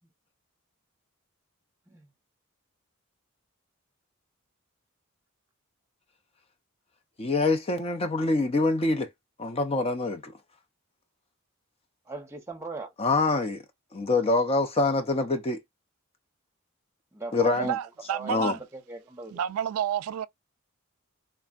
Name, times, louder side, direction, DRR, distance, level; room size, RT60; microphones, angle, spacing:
voice 1, 7.2-9.1 9.4-10.3 13.0-13.6 13.9-15.6 17.3-17.7 18.3-18.5, left 3 dB, 25° left, 0.4 m, -25 dB
voice 2, 12.1-12.9 17.1-17.8 18.1-19.4, right 3 dB, 10° right, 0.7 m, -39 dB
voice 3, 17.5-18.6 19.3-20.3, right 9 dB, 80° right, 0.3 m, -30 dB
3.4 x 2.1 x 2.3 m
head